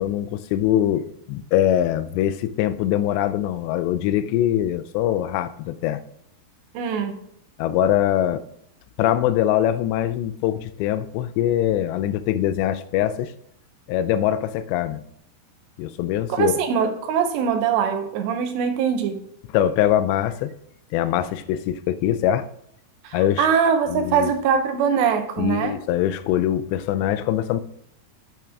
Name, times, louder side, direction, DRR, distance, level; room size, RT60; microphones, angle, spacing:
voice 1, 0.0-6.0 7.6-8.4 9.0-13.3 13.9-15.0 15.8-16.5 19.5-20.5 20.9-22.5 23.1-23.5 23.9-24.3 25.4-27.6, left 11 dB, 85° left, 2.8 m, -23 dB
voice 2, 6.7-7.2 16.3-19.2 23.0-25.8, right 7 dB, 85° right, 3.1 m, -22 dB
10.5 x 5.9 x 3.6 m
omnidirectional pair, 4.9 m